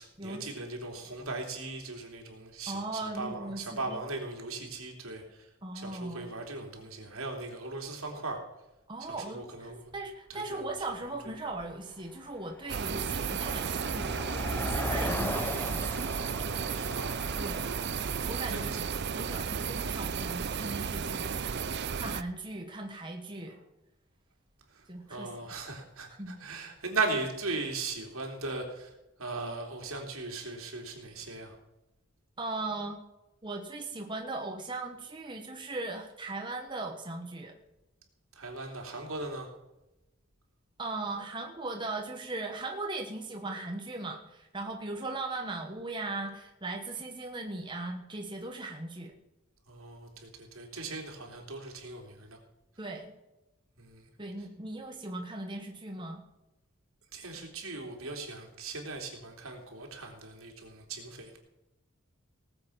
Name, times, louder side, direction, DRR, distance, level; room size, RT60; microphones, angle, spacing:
voice 1, 0.0-5.5 5.7-8.4 9.1-9.9 10.3-10.7 16.7-17.2 17.6-17.9 18.5-18.6 24.7-28.9 29.2-31.5 38.3-39.5 49.7-52.4 53.8-54.1 57.1-61.4, right 3 dB, 80° right, 1 dB, 3.2 m, -38 dB
voice 2, 2.7-4.0 5.6-6.3 8.9-16.1 17.4-17.7 18.3-18.8 19.1-21.3 21.9-23.6 24.9-25.3 26.2-26.4 32.4-33.0 33.4-37.5 40.8-49.1 52.8-53.1 54.2-56.2, right 2 dB, 20° right, 2 dB, 1.4 m, -38 dB
Car passing by, 9.9-10.0 10.8-11.1 11.3-21.7, left 1 dB, 10° left, 0.7 m, -40 dB
sound 1, 12.7-22.2, right 6 dB, 50° right, 0.5 m, -33 dB
18.5 x 7.9 x 5.8 m, 0.96 s
head